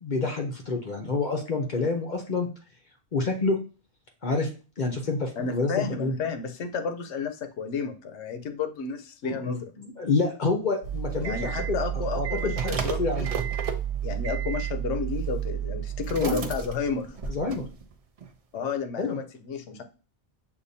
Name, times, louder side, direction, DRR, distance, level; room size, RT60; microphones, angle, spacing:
voice 1, 0.0-2.5 3.1-3.6 4.2-4.5 4.8-6.1 9.2-11.8 12.1-13.3 16.2-16.5 17.3-17.6 19.0-19.2, left 3 dB, 45° left, 3 dB, 0.7 m, -28 dB
voice 2, 5.4-9.7 11.2-13.3 14.0-17.1 18.5-19.8, left 5 dB, 75° left, 8 dB, 0.9 m, -31 dB
sound 1, 10.8-17.9 18.2-18.3, right 9 dB, 60° right, 0.4 m, -31 dB
6.7 x 2.6 x 2.6 m, 0.35 s
omnidirectional pair, 1.2 m